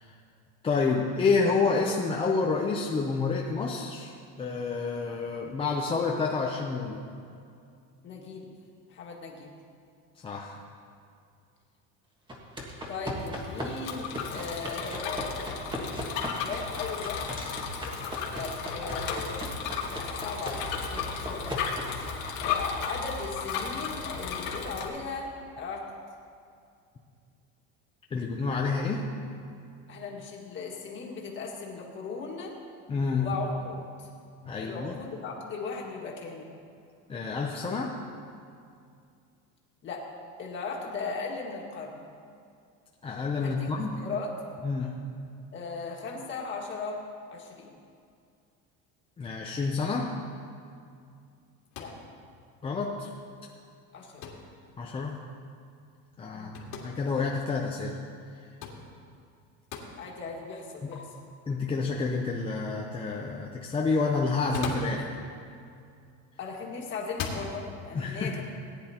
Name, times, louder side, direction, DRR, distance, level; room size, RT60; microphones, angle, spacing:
voice 1, 0.6-4.1 4.4-7.0 10.2-10.6 28.1-29.1 32.9-33.3 34.5-34.9 37.1-38.0 43.0-44.0 44.6-44.9 49.2-50.2 52.6-53.1 54.8-55.2 56.2-58.0 60.8-60.9 61.5-65.2 67.9-68.4, left 4 dB, 15° left, -1 dB, 0.5 m, -29 dB
voice 2, 8.0-8.5 8.9-9.5 12.9-16.1 16.4-17.5 18.3-19.6 19.9-21.7 22.4-25.8 29.9-32.5 33.2-34.1 34.6-36.5 39.8-40.1 40.4-42.0 43.4-43.7 44.0-44.4 45.5-47.0 47.3-47.8 51.8-51.9 53.9-54.3 56.3-56.6 60.0-61.0 66.4-68.4, left 4 dB, 35° left, -1 dB, 1.8 m, -37 dB
sound 1, 12.3-22.8, equal, 15° right, 1.5 m, -39 dB
Bicycle, 13.1-24.9, left 6 dB, 90° left, 1.7 m, -35 dB
sound 2, 51.7-52.1 54.2-54.5 56.5-56.9 58.6-58.8 59.7-59.9 60.9-61.0 64.3-65.0 66.1-66.5 67.1-67.5, left 6 dB, 65° left, 2.1 m, -37 dB
18.5 x 10.0 x 2.9 m, 2.4 s
cardioid pair, 160°, 34 cm